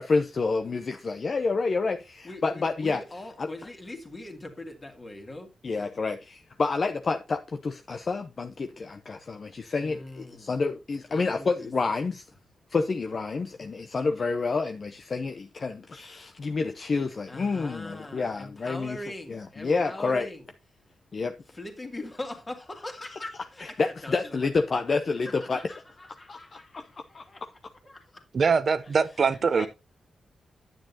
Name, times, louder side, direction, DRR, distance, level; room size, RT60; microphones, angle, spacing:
voice 1, 0.0-3.0 3.4-3.5 5.6-12.2 12.7-19.0 19.3-20.3 21.1-21.4 23.6-25.7 26.3-26.9 27.1-27.2 29.6-29.7, left 4 dB, 40° left, 0.7 m, -29 dB
voice 2, 2.2-5.5 9.8-10.6 11.1-11.7 12.0-12.1 13.8-14.3 17.3-20.5 21.5-25.0 25.3-27.4 27.9-28.2 29.5-29.7, left 1 dB, 20° left, 2.5 m, -42 dB
voice 3, 28.3-29.7, right 5 dB, 45° right, 0.7 m, -23 dB
10.5 x 9.0 x 2.8 m
wide cardioid pair, 135°, 0 cm